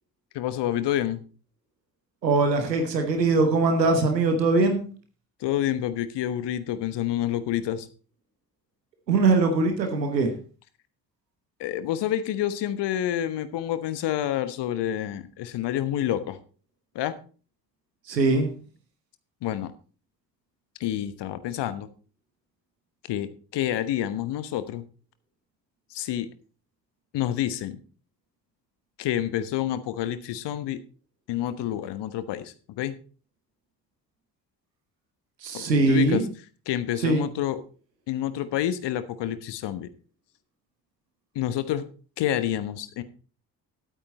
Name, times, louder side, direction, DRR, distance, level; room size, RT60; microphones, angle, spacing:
voice 1, 0.3-1.2 5.4-7.9 11.6-16.4 16.9-17.1 19.4-19.7 20.8-21.9 23.1-24.8 25.9-26.3 27.1-27.8 29.0-30.8 31.3-33.0 35.5-36.2 36.7-37.6 38.1-39.9 41.3-41.9 42.2-43.0, left 11 dB, 55° left, 13 dB, 1.2 m, -28 dB
voice 2, 2.2-4.9 9.1-10.3 18.1-18.5 35.4-36.2 37.0-37.2, right 3 dB, 85° right, 6 dB, 1.2 m, -21 dB
11.5 x 8.7 x 4.2 m, 0.37 s
figure-of-eight pair, 40°, 49 cm